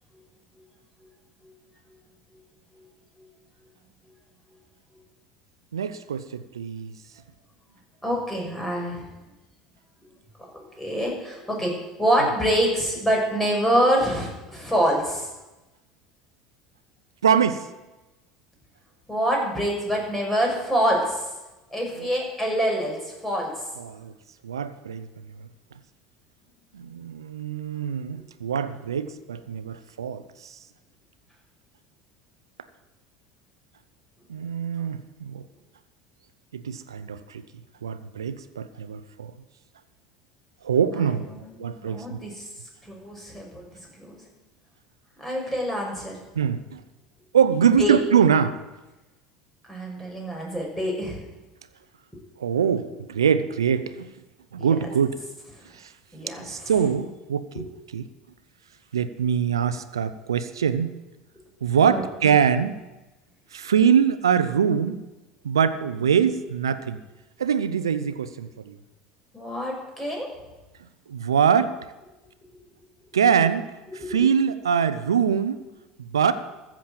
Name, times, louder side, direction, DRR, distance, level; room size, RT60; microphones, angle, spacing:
voice 1, 5.7-7.0 17.2-17.7 22.0-22.1 23.8-24.1 24.4-25.1 26.7-30.5 34.3-35.4 36.5-37.4 37.8-39.3 40.6-41.3 41.6-42.3 46.3-46.8 47.3-48.6 52.4-54.1 54.5-55.2 55.7-55.9 56.4-57.6 57.9-58.1 58.9-60.9 61.6-62.8 63.5-65.0 65.4-67.0 67.4-68.8 71.1-71.7 73.1-73.6 74.1-75.6 76.0-76.3, right 7 dB, 90° right, 12 dB, 0.7 m, -23 dB
voice 2, 8.0-9.1 10.5-15.3 19.1-21.3 21.7-23.7 41.3-42.5 42.8-43.7 44.0-44.2 45.2-46.2 47.6-48.0 49.7-51.2 54.6-54.7 56.1-56.7 61.8-62.3 69.3-70.3 73.9-74.3, equal, 10° left, -1 dB, 6.2 m, -26 dB
14.0 x 7.5 x 7.6 m, 1.1 s
hypercardioid pair, 75°, 2 cm